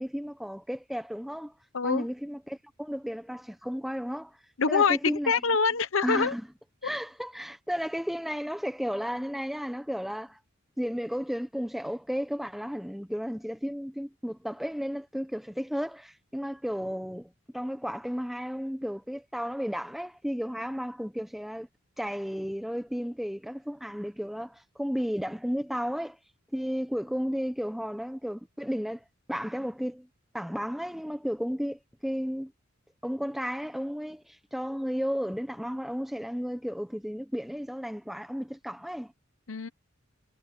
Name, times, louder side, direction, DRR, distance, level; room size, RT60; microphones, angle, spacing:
voice 1, 0.0-1.5 1.8-4.4 4.7-5.4 6.0-6.5 6.8-10.4 10.8-21.7 22.0-26.2 26.5-30.1 30.3-32.5 33.0-39.1, equal, ahead, 1.1 m, -33 dB
voice 2, 1.7-2.1 4.6-6.3 39.5-39.7, left 5 dB, 75° left, 0.9 m, -25 dB
head